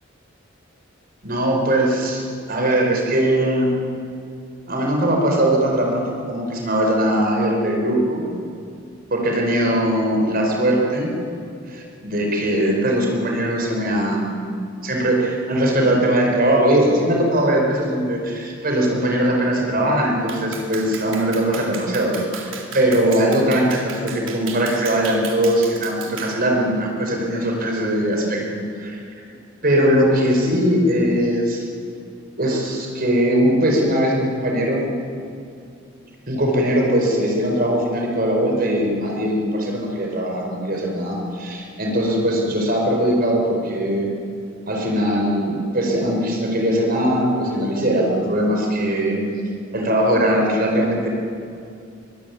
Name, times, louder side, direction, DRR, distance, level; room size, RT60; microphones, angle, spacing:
voice 1, 1.2-2.2 2.5-3.7 4.7-6.0 6.3-8.3 9.1-11.1 11.7-29.0 29.6-31.7 32.4-34.9 36.3-44.1 44.7-49.3 49.7-51.1, right 1 dB, 50° right, 1 dB, 5.1 m, -20 dB
Clapping, 20.3-26.4, right 6 dB, 90° right, 3.7 m, -35 dB
23.0 x 23.0 x 9.6 m, 2.5 s
head